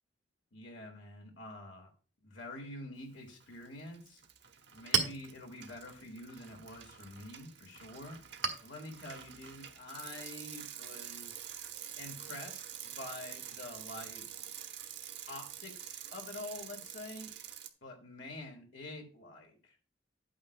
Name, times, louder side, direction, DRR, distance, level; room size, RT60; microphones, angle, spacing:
voice 1, 0.5-1.9 2.2-4.2 4.7-8.2 8.6-11.5 12.0-14.4 15.3-17.3 17.8-19.8, left 2 dB, 80° left, 1 dB, 1.8 m, -47 dB
Bicycle, 3.3-3.7 3.9-17.7, right 10 dB, 65° right, 0.9 m, -47 dB
Chink clink, 4.3-11.5, right 6 dB, 80° right, 1.3 m, -41 dB
11.0 x 8.6 x 2.2 m, 0.38 s
head